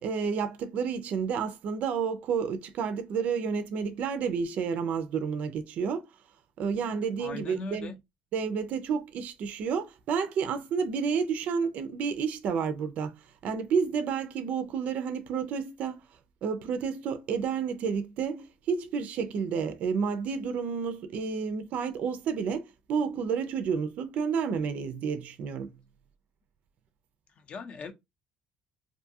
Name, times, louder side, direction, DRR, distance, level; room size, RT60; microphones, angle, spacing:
voice 1, 0.0-6.1 6.6-7.9 8.3-13.1 13.4-16.0 16.4-25.7, right 6 dB, 55° right, 0.4 m, -30 dB
voice 2, 7.2-8.0 27.4-27.9, left 4 dB, 40° left, 0.5 m, -39 dB
2.6 x 2.3 x 2.6 m
cardioid pair, 145°, 3 cm